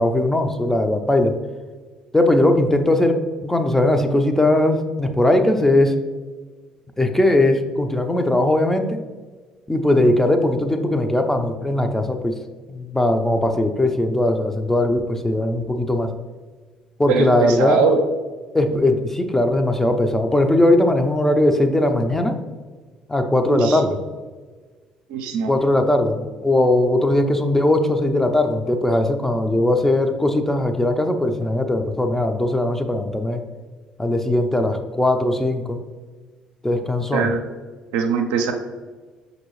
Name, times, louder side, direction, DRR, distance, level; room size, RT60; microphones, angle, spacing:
voice 1, 0.0-1.3 2.1-5.9 7.0-9.0 9.7-12.3 12.7-16.1 17.0-17.8 18.5-22.4 23.1-24.0 25.5-33.4 34.0-35.8 36.6-37.3, left 1 dB, 10° left, 6 dB, 0.5 m, -19 dB
voice 2, 17.1-18.0 23.5-23.8 25.1-25.5 37.1-37.4 37.9-38.5, right 5 dB, 75° right, 4 dB, 0.5 m, -21 dB
5.9 x 2.6 x 3.1 m, 1.4 s
hypercardioid pair, 55°, 3 cm